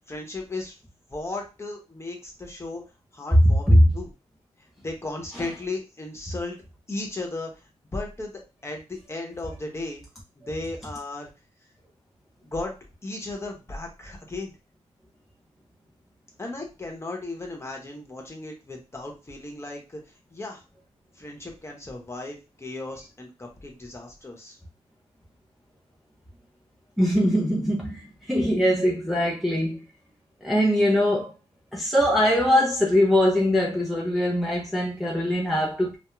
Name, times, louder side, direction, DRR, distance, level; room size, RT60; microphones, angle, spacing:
voice 1, 0.1-0.7 1.1-2.8 3.1-4.1 4.6-6.6 6.9-7.5 7.9-10.0 10.4-11.3 12.4-12.8 13.0-14.5 16.4-20.0 20.3-20.6 21.2-24.6, left 2 dB, 20° left, 0.9 m, -35 dB
voice 2, 3.3-3.9 27.0-29.8 30.4-31.3 31.7-36.0, equal, ahead, 0.5 m, -21 dB
2.3 x 2.0 x 3.1 m
cardioid pair, 80°, 12 cm